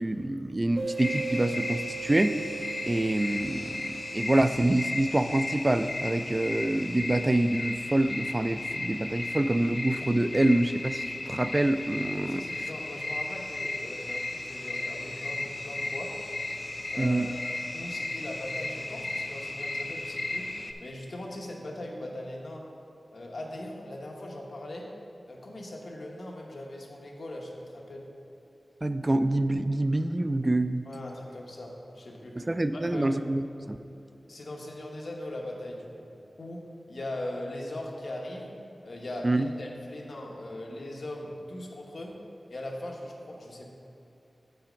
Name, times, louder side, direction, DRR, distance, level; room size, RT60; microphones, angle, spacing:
voice 1, 0.0-2.4 2.9-12.4 17.0-17.3 28.8-30.8 32.5-33.8 39.2-39.5, right 1 dB, 25° right, 10 dB, 0.3 m, -26 dB
sound 1, 0.8-6.1, right 5 dB, 60° right, 1.1 m, -40 dB
sound 2, 1.0-20.7, left 2 dB, 45° left, 0.5 m, -35 dB
voice 2, 12.2-16.1 16.9-20.5 20.8-22.7 23.1-24.9 25.3-28.0 30.8-33.1 34.3-36.1 36.4-38.5 38.8-42.1 42.5-43.8, left 1 dB, 65° left, -1 dB, 1.1 m, -40 dB
7.6 x 5.7 x 5.1 m, 2.9 s
wide cardioid pair, 95°, 0 cm